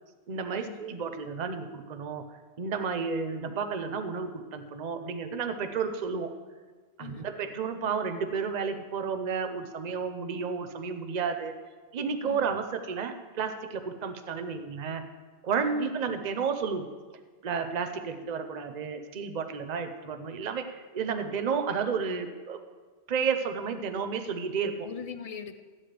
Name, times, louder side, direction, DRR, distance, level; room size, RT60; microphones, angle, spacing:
voice 1, 0.3-2.2 2.6-6.3 7.0-11.5 11.9-15.1 15.4-16.9 17.4-22.6 23.1-24.9, right 5 dB, 45° right, 8 dB, 0.8 m, -32 dB
voice 2, 24.8-25.6, left 7 dB, 45° left, 9 dB, 0.5 m, -41 dB
14.0 x 9.9 x 3.3 m, 1.4 s
omnidirectional pair, 1.1 m